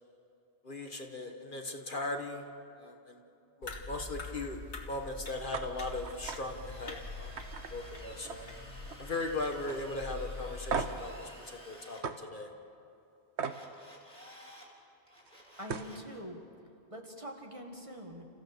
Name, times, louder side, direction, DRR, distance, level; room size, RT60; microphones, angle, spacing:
voice 1, 0.6-2.4 2.8-3.2 3.6-4.6 4.9-8.5 9.0-12.5, left 2 dB, 50° left, 3 dB, 1.5 m, -38 dB
sound 1, 3.6-11.0, left 3 dB, 75° left, 2.4 m, -44 dB
sound 2, 5.5-5.7 6.0-6.4 6.8-7.0 7.4-8.5 8.8-9.2 9.7-9.8 10.7-11.1 12.0-12.2 13.4-13.6 15.3-15.4 15.6-15.9, right 6 dB, 75° right, 1.3 m, -36 dB
Drill, 5.7-12.0 13.4-14.7 15.1-16.1, equal, 5° left, 4.0 m, -53 dB
voice 2, 15.6-16.4 16.9-18.3, equal, 30° right, 2 dB, 1.9 m, -44 dB
29.5 x 15.5 x 6.8 m, 2.7 s
omnidirectional pair, 1.2 m